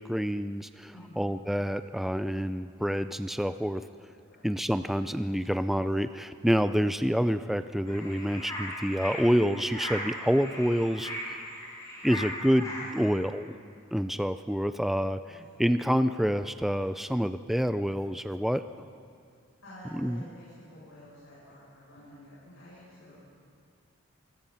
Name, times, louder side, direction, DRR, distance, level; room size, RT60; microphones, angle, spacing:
voice 1, 0.0-3.9 4.4-11.1 12.0-13.5 13.9-15.2 15.6-18.6 20.0-20.2, equal, ahead, 10 dB, 0.4 m, -27 dB
voice 2, 0.9-1.3 4.3-4.4 15.3-15.6 19.6-23.2, equal, 80° left, -8 dB, 7.2 m, -50 dB
sound 1, 7.9-13.1, left 1 dB, 15° left, 6.2 m, -38 dB
26.5 x 18.0 x 5.7 m, 2.3 s
head